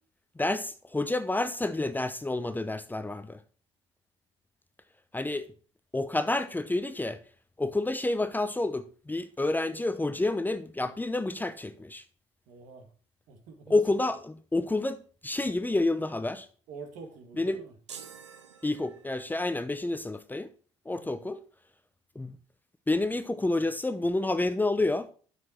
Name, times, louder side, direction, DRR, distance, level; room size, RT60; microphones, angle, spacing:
voice 1, 0.4-3.4 5.1-5.5 5.9-7.2 7.6-12.0 13.7-16.5 17.4-17.6 18.6-20.5 20.9-21.4 22.1-22.4 22.9-25.1, left 2 dB, 10° left, 0.8 m, -29 dB
voice 2, 12.5-12.9 13.3-14.2 16.7-17.8 20.9-21.1, right 4 dB, 65° right, 2.0 m, -46 dB
sound 1, 17.9-19.4, right 7 dB, 90° right, 0.8 m, -48 dB
9.4 x 7.7 x 4.4 m
hypercardioid pair, 55°, 15 cm